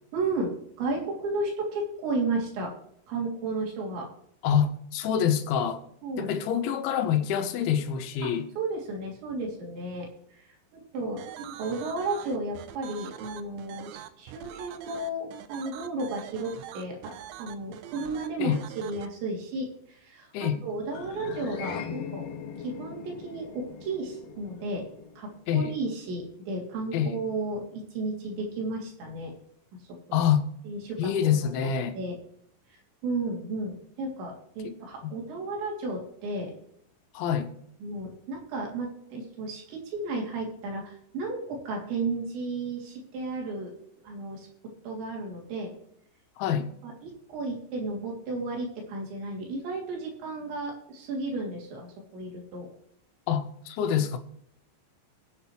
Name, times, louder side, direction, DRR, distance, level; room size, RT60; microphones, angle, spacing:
voice 1, 0.1-2.7 3.1-4.1 6.0-6.3 8.2-8.3 8.6-10.4 10.7-22.3 22.6-24.9 25.2-29.3 30.1-30.2 30.7-32.2 33.0-36.5 37.8-43.7 44.0-44.5 44.8-45.7 46.8-52.7, right 2 dB, 75° right, 5.2 m, -33 dB
voice 2, 4.4-5.8 6.2-8.5 18.4-18.6 20.3-20.6 25.5-25.7 26.9-27.2 30.1-30.5 31.0-32.0 34.6-34.7 35.0-35.1 37.1-37.5 46.4-46.7 53.3-54.2, left 8 dB, 85° left, 3.4 m, -26 dB
sound 1, 11.2-19.1, right 11 dB, 90° right, 3.2 m, -44 dB
sound 2, 20.9-25.5, left 7 dB, 60° left, 2.4 m, -40 dB
22.5 x 7.9 x 3.2 m
omnidirectional pair, 5.3 m